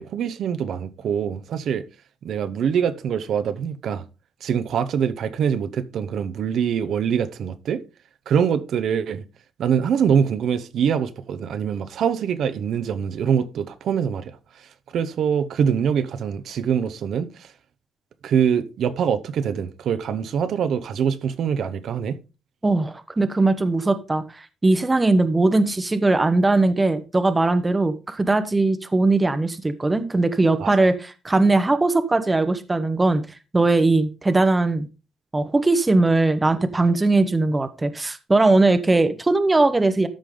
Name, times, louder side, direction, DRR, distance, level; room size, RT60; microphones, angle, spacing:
voice 1, 0.0-1.8 2.2-4.0 4.4-7.8 8.3-9.2 9.6-14.3 14.6-14.7 14.9-17.5 18.2-22.2 30.6-30.9, right 7 dB, 65° right, 0.8 m, -24 dB
voice 2, 22.6-24.2 24.6-33.2 33.5-34.9 35.3-40.1, right 2 dB, 15° right, 0.9 m, -20 dB
13.0 x 5.1 x 3.7 m
cardioid pair, 115°, 0 cm